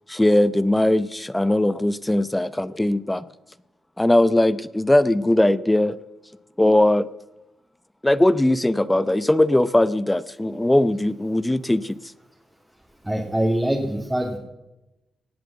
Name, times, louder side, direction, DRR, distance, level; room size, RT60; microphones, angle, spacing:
voice 1, 0.1-3.2 4.0-6.0 6.6-7.1 8.0-12.0, left 1 dB, 15° left, 16 dB, 0.7 m, -19 dB
voice 2, 13.0-14.4, right 1 dB, 15° right, 0 dB, 2.6 m, -24 dB
18.5 x 7.6 x 7.3 m, 0.96 s
supercardioid pair, 55°, 0 cm